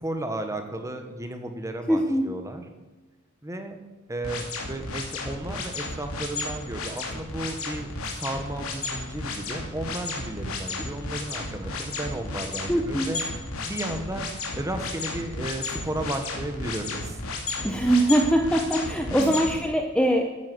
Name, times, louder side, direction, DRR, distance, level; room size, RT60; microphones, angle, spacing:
voice 1, 0.0-2.6 3.4-3.8 4.1-13.2 13.6-14.2 14.5-17.2 19.1-19.4, right 1 dB, 15° right, 6 dB, 1.4 m, -34 dB
voice 2, 1.9-2.3 12.7-13.1 17.6-20.3, right 1 dB, 5° left, 3 dB, 0.9 m, -22 dB
sound 1, 4.2-19.5, left 3 dB, 85° left, 2.8 m, -33 dB
12.0 x 9.7 x 7.8 m, 1.1 s
head